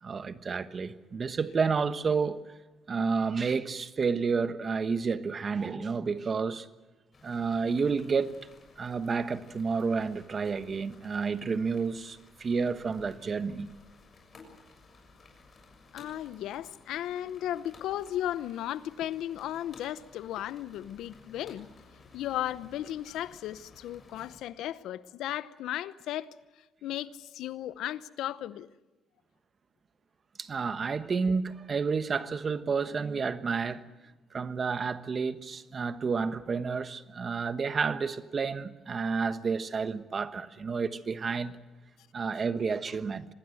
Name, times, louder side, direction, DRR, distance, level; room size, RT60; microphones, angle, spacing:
voice 1, 0.0-2.4 2.9-6.7 7.2-8.4 8.8-13.7 30.4-33.8 34.3-41.6 42.1-43.3, right 5 dB, 40° right, 1.3 m, -30 dB
sound 1, 7.1-24.4, left 3 dB, 40° left, 7.0 m, -56 dB
voice 2, 15.9-21.7 22.1-26.3 26.8-28.7, left 12 dB, 85° left, 0.8 m, -35 dB
25.5 x 20.0 x 7.8 m
cardioid pair, 90°, 0 cm